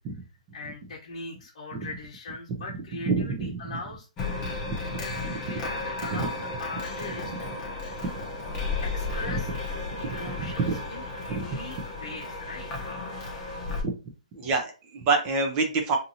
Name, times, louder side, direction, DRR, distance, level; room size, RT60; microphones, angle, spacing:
voice 1, 0.5-4.1 4.9-5.1 5.4-8.2 8.8-9.5 10.0-12.9, left 3 dB, 55° left, -3 dB, 0.8 m, -41 dB
voice 2, 3.1-3.6 4.5-5.0 5.2-5.4 6.1-6.3 10.1-10.7 11.3-11.4 14.3-16.0, right 4 dB, 20° right, 3 dB, 0.5 m, -27 dB
sound 1, 4.2-13.8, left 3 dB, 20° left, 0.7 m, -34 dB
2.6 x 2.6 x 2.7 m, 0.34 s
hypercardioid pair, 155°, 4 cm